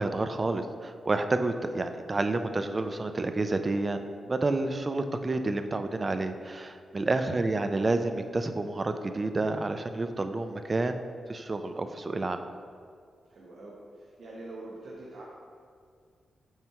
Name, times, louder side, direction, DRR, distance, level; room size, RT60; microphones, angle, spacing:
voice 1, 0.0-11.0 11.3-12.4, right 2 dB, 25° right, 8 dB, 0.3 m, -29 dB
voice 2, 7.0-7.3 13.3-15.2, right 2 dB, 65° right, -5 dB, 0.9 m, -45 dB
7.5 x 3.0 x 4.6 m, 2.1 s
wide cardioid pair, 150°, 0 cm